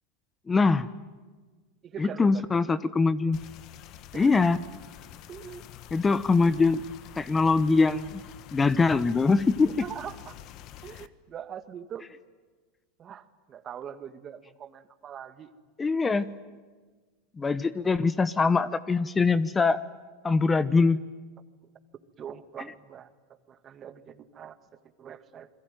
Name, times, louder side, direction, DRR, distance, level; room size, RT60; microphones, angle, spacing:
voice 1, 0.5-0.9 2.0-3.4 4.1-4.6 5.9-6.8 7.2-8.2 8.5-9.7 15.8-16.3 17.4-19.8 20.2-21.0, left 4 dB, 20° left, 15 dB, 1.0 m, -23 dB
voice 2, 1.8-2.5 4.1-4.6 5.3-5.6 9.6-10.4 10.8-12.1 13.0-15.5 16.4-16.5 22.2-25.5, right 8 dB, 35° right, 10 dB, 1.9 m, -43 dB
sound 1, 3.3-11.1, left 11 dB, 50° left, 1.3 m, -47 dB
28.0 x 22.0 x 9.2 m, 1.4 s
hypercardioid pair, 110°, 0 cm